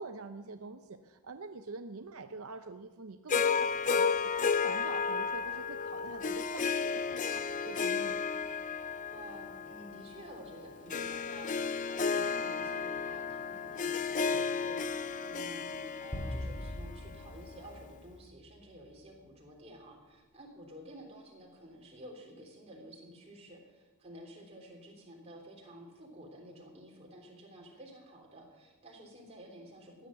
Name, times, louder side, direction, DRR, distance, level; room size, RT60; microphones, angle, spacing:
voice 1, 0.0-8.3, right 3 dB, 75° right, 7 dB, 0.7 m, -45 dB
Harp, 3.3-17.7, left 5 dB, 35° left, 0.5 m, -33 dB
voice 2, 9.1-11.5 11.9-30.1, equal, 25° right, -1 dB, 3.4 m, -51 dB
sound 1, 16.1-18.7, left 1 dB, 15° left, 2.1 m, -41 dB
15.5 x 10.0 x 7.5 m, 1.2 s
head